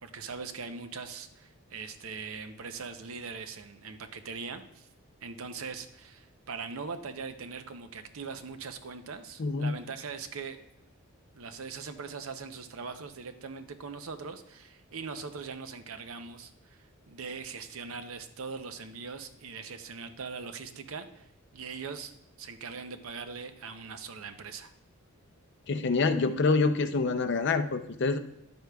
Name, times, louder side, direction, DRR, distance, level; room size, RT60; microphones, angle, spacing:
voice 1, 0.0-4.9 5.2-10.6 11.3-21.3 21.5-22.1 22.4-24.7, right 5 dB, 70° right, 9 dB, 0.6 m, -41 dB
voice 2, 9.4-9.7 25.7-28.2, left 4 dB, 50° left, 9 dB, 0.5 m, -26 dB
10.5 x 8.0 x 2.3 m, 0.83 s
head